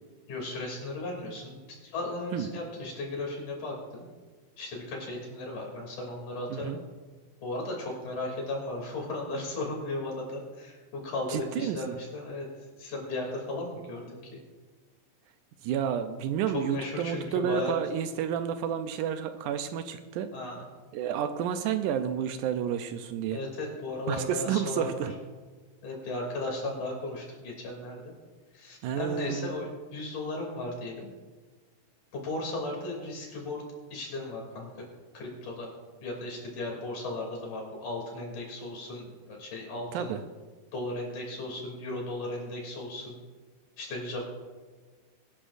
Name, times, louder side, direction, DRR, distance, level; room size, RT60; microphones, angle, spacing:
voice 1, 0.3-4.1 4.6-6.8 7.4-12.5 12.8-14.2 16.5-17.8 20.3-20.6 23.3-25.1 25.8-28.1 28.5-31.1 32.1-33.6 33.9-34.8 35.1-35.7 36.0-40.1 40.7-43.2 43.8-44.3, left 2 dB, 65° left, -1 dB, 4.3 m, -36 dB
voice 2, 11.3-12.0 15.6-20.3 20.9-23.4 24.1-25.1 28.8-29.6 39.9-40.2, right 8 dB, 80° right, 9 dB, 2.0 m, -30 dB
24.5 x 10.0 x 2.6 m, 1.4 s
omnidirectional pair, 3.9 m